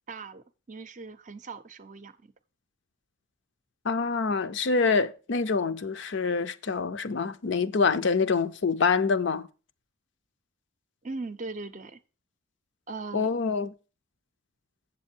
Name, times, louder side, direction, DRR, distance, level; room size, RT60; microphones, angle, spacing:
voice 1, 0.1-2.3 11.0-12.0 12.9-13.3, right 3 dB, 35° right, 0.5 m, -39 dB
voice 2, 3.8-9.5 13.1-13.7, left 4 dB, 55° left, 0.5 m, -26 dB
8.0 x 7.5 x 4.4 m
head